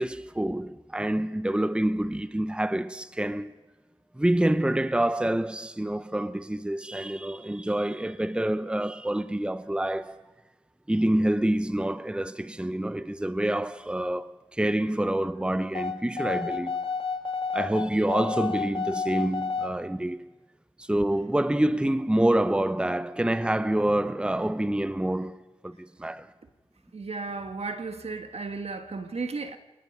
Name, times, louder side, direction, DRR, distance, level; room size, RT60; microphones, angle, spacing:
voice 1, 0.0-3.6 4.1-10.2 10.9-16.8 17.5-20.3 20.8-26.3, right 1 dB, 10° right, 0.7 m, -27 dB
sound 1, 15.7-19.7, left 5 dB, 55° left, 2.9 m, -30 dB
voice 2, 26.9-29.6, right 4 dB, 70° right, 1.7 m, -34 dB
28.0 x 19.5 x 5.5 m
cardioid pair, 50°, 11 cm